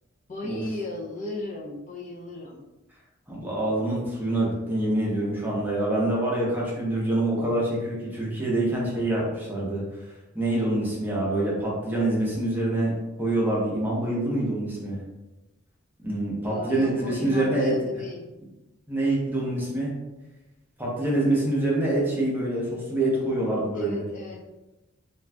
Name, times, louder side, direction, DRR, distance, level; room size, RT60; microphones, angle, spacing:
voice 1, 0.3-2.6 16.4-18.3 23.7-24.4, left 2 dB, 35° left, -4 dB, 0.4 m, -36 dB
voice 2, 3.3-9.8 10.3-12.9 13.2-15.0 16.0-17.7 18.9-19.9 20.8-24.0, right 1 dB, 10° right, -5 dB, 0.7 m, -26 dB
2.4 x 2.3 x 3.2 m, 1.0 s
head